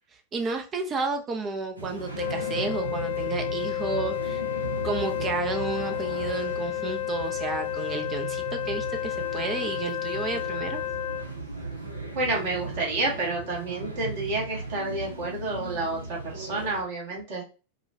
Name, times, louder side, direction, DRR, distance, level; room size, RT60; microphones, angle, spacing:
voice 1, 0.3-4.4 4.8-10.8, right 4 dB, 25° right, 6 dB, 0.5 m, -32 dB
sound 1, 1.8-16.8, right 3 dB, 80° right, 0.8 m, -37 dB
Wind instrument woodwind instrument, 2.2-11.3, left 16 dB, 50° left, 0.4 m, -31 dB
voice 2, 12.1-17.4, right 2 dB, 50° right, -2 dB, 1.4 m, -29 dB
4.8 x 2.3 x 2.7 m, 0.35 s
figure-of-eight pair, 90°, 0 cm